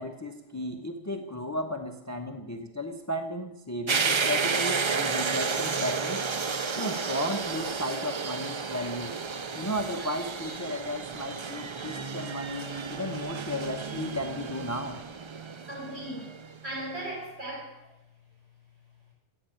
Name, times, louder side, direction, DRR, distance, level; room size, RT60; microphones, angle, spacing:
voice 1, 0.0-6.2 6.8-9.2 9.5-15.0, equal, 15° left, 6 dB, 0.9 m, -34 dB
sound 1, 3.9-16.6, right 5 dB, 40° right, 0.4 m, -32 dB
voice 2, 15.7-16.3 16.6-17.8, right 1 dB, 60° right, -4 dB, 7.2 m, -39 dB
14.5 x 8.5 x 9.1 m, 0.88 s
omnidirectional pair, 1.2 m